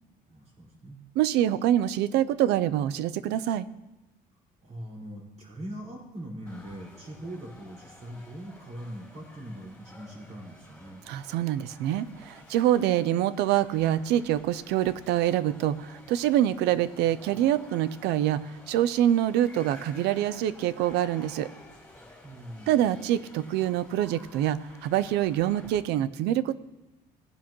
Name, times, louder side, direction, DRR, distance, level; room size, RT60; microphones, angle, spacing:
voice 1, 0.3-1.1 4.6-11.0 22.2-22.9, right 1 dB, 40° right, -2 dB, 5.2 m, -41 dB
voice 2, 1.2-3.6 11.1-21.5 22.7-26.6, right 12 dB, 85° right, 16 dB, 0.6 m, -25 dB
sound 1, 6.5-25.8, left 1 dB, 5° left, 3.3 m, -52 dB
17.5 x 10.5 x 3.1 m, 1.0 s
cardioid pair, 110°, 17 cm